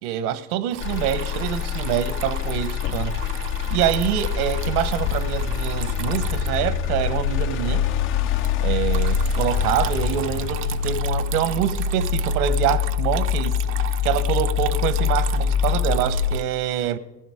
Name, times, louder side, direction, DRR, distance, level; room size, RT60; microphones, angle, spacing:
voice 1, 0.0-3.2 3.7-7.8 8.6-13.6 14.0-17.0, right 10 dB, 70° right, 1.2 m, -25 dB
Water tap faucet / Trickle dribble, 0.7-16.4, right 11 dB, 30° right, 0.5 m, -37 dB
Motor vehicle (road), 0.8-14.8 15.3-15.8, left 11 dB, 30° left, 0.4 m, -28 dB
sound 1, 1.7-16.4, left 6 dB, 70° left, 3.3 m, -26 dB
15.0 x 11.5 x 4.9 m
supercardioid pair, 120°, 46 cm